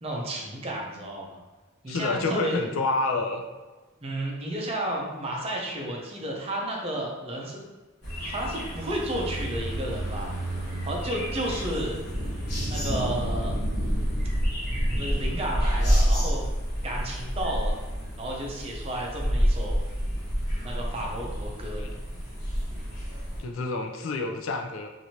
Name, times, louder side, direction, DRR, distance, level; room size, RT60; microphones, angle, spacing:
voice 1, 0.0-1.4 1.8-2.7 4.0-7.6 8.2-10.3 10.9-12.0 12.7-13.5 14.9-16.4 16.8-17.7 18.2-19.9 20.6-21.8, right 1 dB, 30° right, -2 dB, 0.6 m, -32 dB
voice 2, 1.9-3.4 21.8-21.9 23.4-24.9, left 3 dB, 75° left, 4 dB, 0.4 m, -28 dB
sound 1, 8.0-23.4, equal, 50° left, 1.4 m, -28 dB
3.0 x 2.6 x 2.8 m, 1.2 s
head